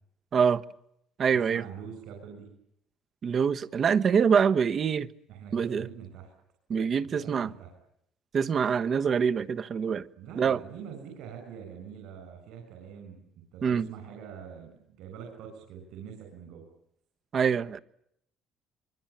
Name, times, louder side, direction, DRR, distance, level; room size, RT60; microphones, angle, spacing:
voice 1, 0.3-0.6 1.2-1.6 3.2-5.1 5.5-5.9 6.7-7.5 8.3-10.1 10.4-10.6 13.6-13.9 17.3-17.8, right 6 dB, 40° right, 1.2 m, -25 dB
voice 2, 1.3-2.5 5.3-6.3 7.0-7.7 10.2-13.2 13.5-16.6, right 7 dB, 75° right, 7.9 m, -44 dB
25.5 x 24.0 x 8.9 m
cardioid pair, 135°, 0 cm